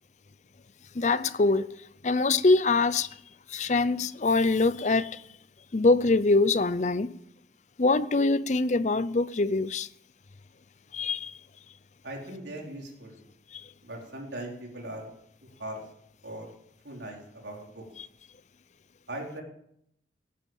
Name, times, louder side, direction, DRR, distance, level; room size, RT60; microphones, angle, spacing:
voice 1, 0.9-1.7 2.0-3.1 3.5-5.2 5.7-7.1 7.8-9.9 10.9-11.3 13.5-13.6 18.0-18.1, left 3 dB, 40° left, 0.6 m, -24 dB
voice 2, 12.0-13.2 13.8-15.1 15.6-15.8 16.2-16.5 16.8-17.8 19.1-19.4, right 1 dB, 85° right, 4.2 m, -39 dB
17.5 x 10.0 x 7.4 m
head